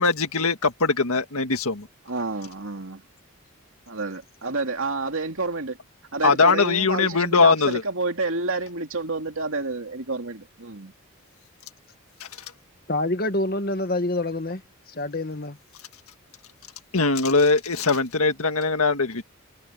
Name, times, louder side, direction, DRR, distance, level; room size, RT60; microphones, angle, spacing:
voice 1, 0.0-1.9 6.2-7.8 12.2-12.3 16.9-19.2, left 4 dB, 80° left, 1.8 m, -21 dB
voice 2, 2.1-3.0 3.9-5.8 6.1-10.9, right 3 dB, 65° right, 2.7 m, -29 dB
voice 3, 12.9-14.6 14.9-15.6, left 2 dB, 45° left, 1.6 m, -26 dB
head